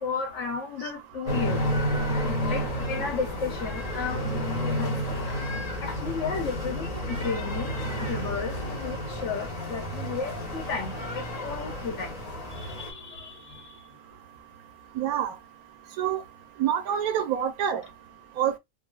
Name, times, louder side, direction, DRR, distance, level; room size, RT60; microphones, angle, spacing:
voice 1, 0.0-1.7 2.2-4.3 4.7-5.3 5.8-7.7 8.1-12.2 12.5-13.7, left 5 dB, 60° left, 1.0 m, -34 dB
sound 1, 1.3-12.9, equal, 35° left, 0.8 m, -31 dB
voice 2, 15.0-15.3 16.0-16.2 16.6-17.8 18.4-18.6, right 9 dB, 85° right, 1.1 m, -26 dB
3.7 x 2.0 x 2.3 m
omnidirectional pair, 1.5 m